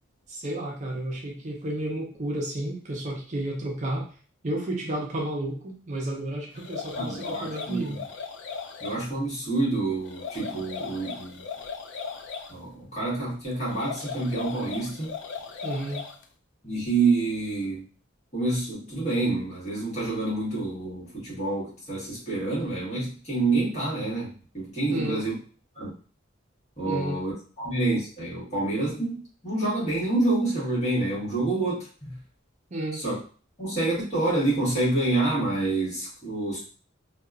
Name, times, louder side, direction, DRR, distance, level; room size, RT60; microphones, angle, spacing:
voice 1, 0.3-4.1 4.4-8.0 15.6-16.0 24.9-25.2 26.8-27.2 32.7-33.0, right 1 dB, 40° right, 0 dB, 0.5 m, -32 dB
sound 1, 6.6-9.0 10.0-12.5 13.7-16.2, left 5 dB, 60° left, 0.4 m, -37 dB
voice 2, 6.9-7.9 8.8-11.4 12.5-15.1 16.6-17.8 18.3-25.4 25.7-25.9 26.8-32.2 32.9-33.2 33.6-36.6, right 2 dB, 35° left, -7 dB, 1.5 m, -27 dB
2.8 x 2.3 x 2.3 m, 0.38 s
head